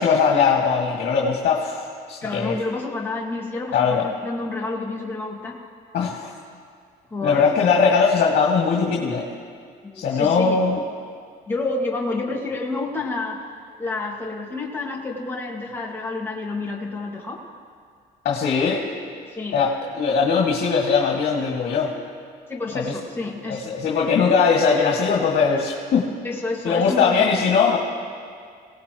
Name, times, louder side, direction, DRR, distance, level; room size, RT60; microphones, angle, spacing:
voice 1, 0.0-2.6 3.7-4.0 5.9-6.3 7.2-9.3 9.9-10.8 18.2-18.8 19.5-21.9 22.7-22.9 23.5-26.1 26.6-27.8, left 5 dB, 60° left, -2 dB, 2.2 m, -20 dB
voice 2, 2.2-5.6 7.1-7.5 9.8-10.6 11.5-13.5 13.8-17.4 19.3-19.6 22.5-23.7 26.2-27.5, left 3 dB, 15° left, -3 dB, 1.9 m, -29 dB
24.0 x 18.0 x 3.1 m, 2.1 s
cardioid pair, 110°, 17 cm